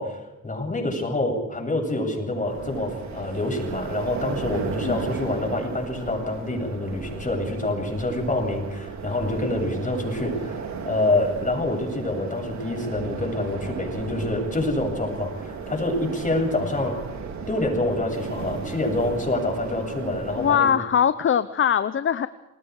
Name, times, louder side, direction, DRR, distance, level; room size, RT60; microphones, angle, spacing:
voice 1, 0.0-17.0 17.5-20.7, left 2 dB, 25° left, 2 dB, 8.0 m, -26 dB
sound 1, 2.3-20.6, right 5 dB, 65° right, 3.7 m, -35 dB
voice 2, 20.4-22.3, left 8 dB, 40° left, 14 dB, 0.9 m, -21 dB
29.5 x 20.0 x 4.9 m, 1.0 s
cardioid pair, 90°, 30 cm